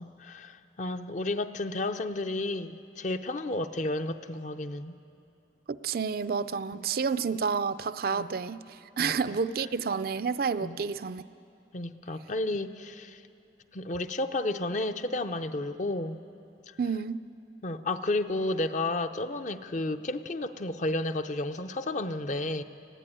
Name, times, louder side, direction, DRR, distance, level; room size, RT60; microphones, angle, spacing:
voice 1, 0.0-4.9 6.7-6.8 8.1-8.3 9.0-9.4 10.6-10.8 11.7-13.2 13.7-16.2 16.7-16.8 17.6-22.6, left 2 dB, 45° left, 9 dB, 0.7 m, -32 dB
voice 2, 5.7-11.2 16.8-17.2, right 5 dB, 55° right, 14 dB, 0.4 m, -30 dB
19.0 x 15.0 x 9.9 m, 2.8 s
head